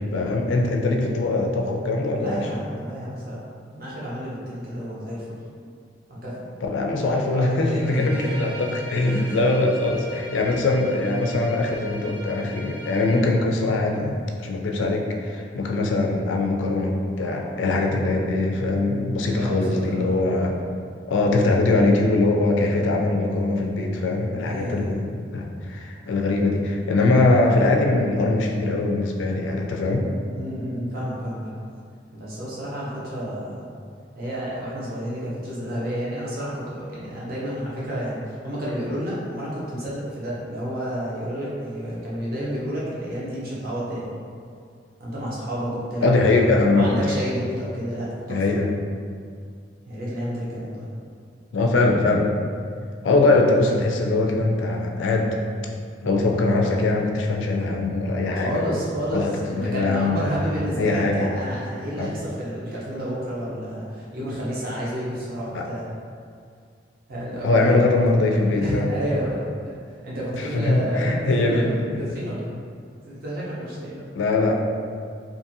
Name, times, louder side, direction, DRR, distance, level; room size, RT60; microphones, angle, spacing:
voice 1, 0.1-2.5 6.6-20.5 21.1-30.0 46.0-47.1 48.3-48.7 51.5-52.3 53.0-55.4 56.0-58.8 59.1-60.4 60.8-61.3 62.0-62.1 65.5-65.6 67.4-68.9 70.3-72.0 74.2-74.6, left 2 dB, 85° left, 1 dB, 0.4 m, -22 dB
voice 2, 2.1-3.4 3.7-5.3 6.1-6.5 7.3-8.4 9.0-9.4 19.2-20.1 24.4-25.0 30.3-31.5 32.1-33.7 34.1-44.1 45.0-46.5 46.7-48.6 49.9-50.9 58.3-65.9 67.1-68.0 68.5-69.7 70.0-72.5 73.0-74.0, equal, 55° right, -7 dB, 0.8 m, -30 dB
Bowed string instrument, 7.7-13.2, equal, 90° right, 1.0 m, -40 dB
2.6 x 2.5 x 2.6 m, 2.2 s
head